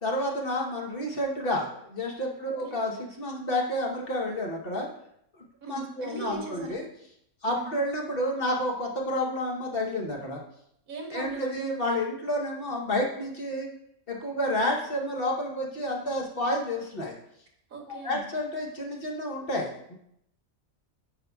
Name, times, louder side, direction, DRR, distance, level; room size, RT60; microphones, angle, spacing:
voice 1, 0.0-4.9 5.7-6.9 7.4-10.4 11.1-13.7 14.1-17.1 18.0-19.9, left 1 dB, 45° left, 0 dB, 1.1 m, -30 dB
voice 2, 5.6-6.8 7.5-7.8 10.9-11.6 17.7-18.2, right 3 dB, 80° right, 1 dB, 1.7 m, -39 dB
9.6 x 5.4 x 2.3 m, 0.73 s
omnidirectional pair, 1.5 m